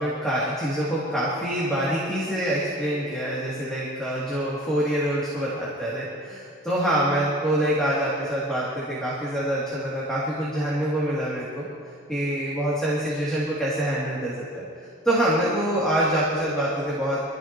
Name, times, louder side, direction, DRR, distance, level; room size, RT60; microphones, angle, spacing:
voice 1, 0.0-11.6 12.1-14.6 15.0-17.2, right 1 dB, 5° left, -8 dB, 2.8 m, -25 dB
25.5 x 15.5 x 3.1 m, 2.5 s
head